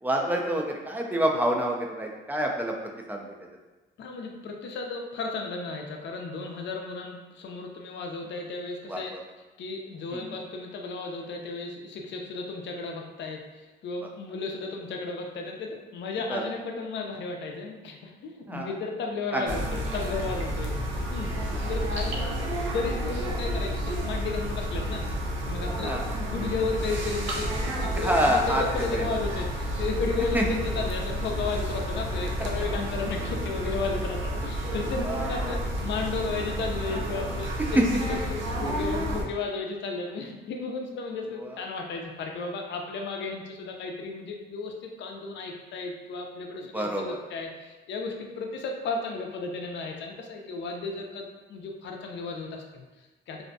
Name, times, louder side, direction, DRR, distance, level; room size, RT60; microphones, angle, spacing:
voice 1, 0.0-2.8 3.1-3.2 8.9-9.2 10.1-10.3 16.3-16.4 18.5-18.7 19.3-19.6 21.5-21.7 25.8-26.0 28.0-29.0 30.3-30.4 35.0-35.5 37.8-37.9 41.4-41.5 46.7-47.2, right 1 dB, 10° right, 1 dB, 0.3 m, -27 dB
voice 2, 4.0-9.1 9.6-25.1 25.4-25.9 26.2-53.4, left 4 dB, 65° left, 2 dB, 0.5 m, -34 dB
sound 1, 19.5-39.2, equal, 75° right, 0.5 m, -30 dB
2.5 x 2.1 x 2.5 m, 1.2 s
cardioid pair, 90°, 20 cm